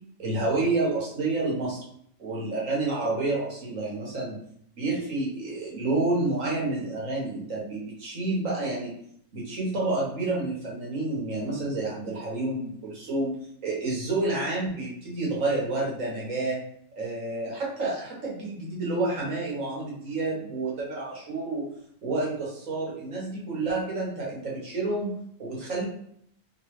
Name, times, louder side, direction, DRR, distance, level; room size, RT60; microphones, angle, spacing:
voice 1, 0.2-1.8 2.2-4.4 4.8-8.9 9.3-13.3 13.6-16.6 17.0-21.7 22.0-25.8, right 2 dB, 75° right, -4 dB, 1.6 m, -29 dB
3.2 x 3.2 x 3.1 m, 0.68 s
omnidirectional pair, 1.4 m